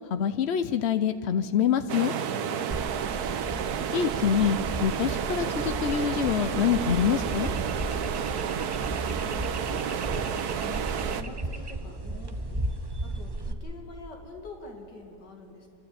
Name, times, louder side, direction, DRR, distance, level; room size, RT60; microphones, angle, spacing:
voice 1, 0.1-2.1 3.9-7.5, left 8 dB, 70° left, 11 dB, 0.6 m, -26 dB
sound 1, 1.9-11.2, right 8 dB, 70° right, 1.3 m, -31 dB
voice 2, 2.3-3.2 7.8-10.8 11.1-12.7 13.0-15.7, left 3 dB, 85° left, 2 dB, 2.7 m, -46 dB
sound 2, 2.7-13.5, right 2 dB, 25° right, 0.5 m, -35 dB
29.0 x 12.0 x 8.7 m, 2.7 s
omnidirectional pair, 1.8 m